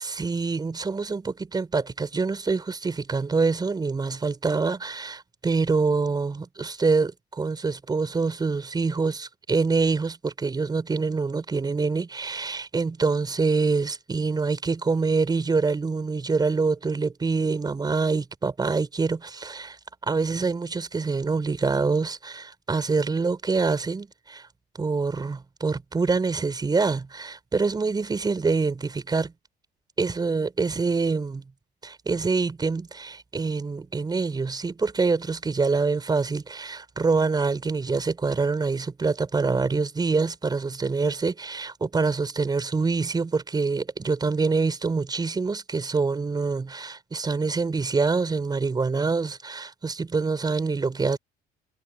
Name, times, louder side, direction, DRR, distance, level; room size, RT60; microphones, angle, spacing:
voice 1, 0.0-24.5 24.8-29.3 30.0-31.4 31.8-51.2, right 4 dB, 25° right, 5.1 m, -25 dB
cardioid pair, 110°, 17 cm